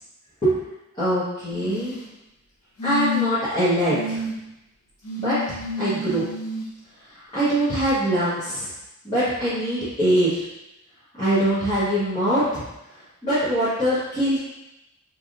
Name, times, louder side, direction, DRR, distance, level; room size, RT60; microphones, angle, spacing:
voice 1, 1.0-1.9 2.8-4.2 5.2-6.2 7.1-8.7 9.0-10.4 11.2-12.6 13.2-14.4, right 1 dB, 25° left, -16 dB, 1.3 m, -23 dB
sound 1, 1.5-2.1 2.8-3.5 3.9-4.3 5.0-6.6 7.9-8.0, left 3 dB, 80° left, 0.7 m, -29 dB
3.5 x 3.1 x 2.6 m, 0.93 s
head